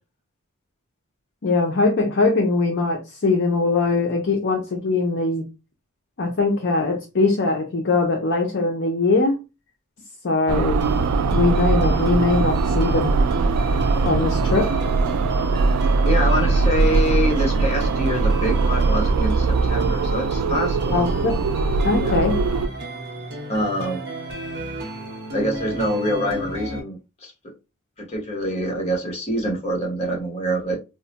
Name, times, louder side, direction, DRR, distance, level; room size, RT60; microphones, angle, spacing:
voice 1, 1.4-5.4 6.2-9.4 10.2-10.8 11.3-13.2 14.0-14.8 20.9-21.5 21.8-22.4, left 3 dB, 55° left, 0.5 m, -21 dB
sound 1, 10.5-22.7, right 3 dB, 85° right, 0.3 m, -21 dB
sound 2, 10.8-26.8, right 1 dB, 50° right, 0.9 m, -33 dB
voice 2, 16.1-21.0 22.0-22.2 23.5-24.0 25.3-27.3 28.1-30.8, equal, 30° left, 1.0 m, -25 dB
2.3 x 2.1 x 3.9 m
head